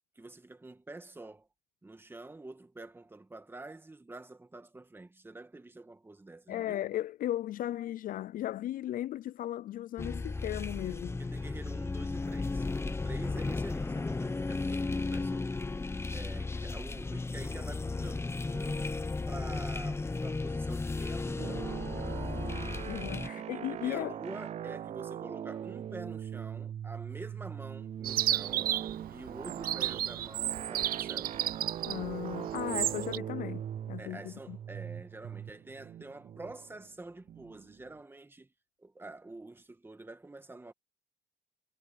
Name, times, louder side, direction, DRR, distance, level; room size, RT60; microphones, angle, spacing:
voice 1, 0.2-1.5 1.8-6.8 10.9-15.5 16.1-18.9 19.3-21.7 23.2-23.4 23.7-28.7 29.1-31.4 34.0-38.5 38.8-40.7, right 2 dB, 15° right, 1.8 m, -47 dB
voice 2, 6.5-11.2 22.8-24.1 31.9-34.6, left 13 dB, 55° left, 0.4 m, -36 dB
sound 1, 10.0-23.3, left 3 dB, 15° left, 0.9 m, -35 dB
sound 2, 21.4-37.9, right 10 dB, 40° right, 0.4 m, -41 dB
Chirp tweet, 28.0-33.2, right 12 dB, 60° right, 0.8 m, -33 dB
cardioid pair, 110°, 17 cm